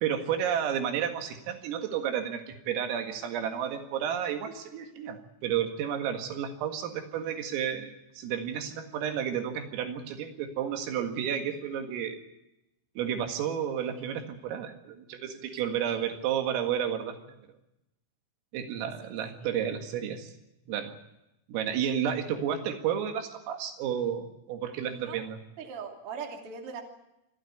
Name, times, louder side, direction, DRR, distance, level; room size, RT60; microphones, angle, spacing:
voice 1, 0.0-12.2 13.0-17.2 18.5-20.3 20.7-20.9 21.5-25.4, right 9 dB, 80° right, 5 dB, 4.5 m, -31 dB
voice 2, 24.8-25.2 25.6-26.8, right 6 dB, 35° right, 2 dB, 2.6 m, -40 dB
26.5 x 12.5 x 9.4 m, 0.89 s
omnidirectional pair, 6.0 m